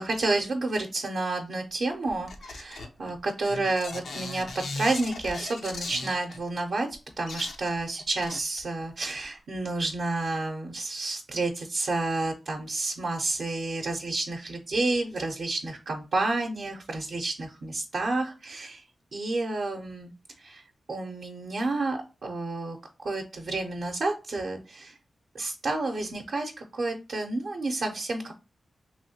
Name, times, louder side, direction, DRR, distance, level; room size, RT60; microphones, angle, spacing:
voice 1, 0.0-4.5 4.8-6.9 7.2-18.8 19.1-20.1 20.4-20.6 20.9-22.8 23.0-25.0 25.3-28.3, right 2 dB, 70° right, 1 dB, 0.5 m, -30 dB
sound 1, 2.1-6.4 6.9-7.0 7.3-8.9 9.2-9.3, left 3 dB, 85° left, 0.5 m, -38 dB
3.0 x 2.7 x 2.7 m, 0.30 s
cardioid pair, 60°, 0 cm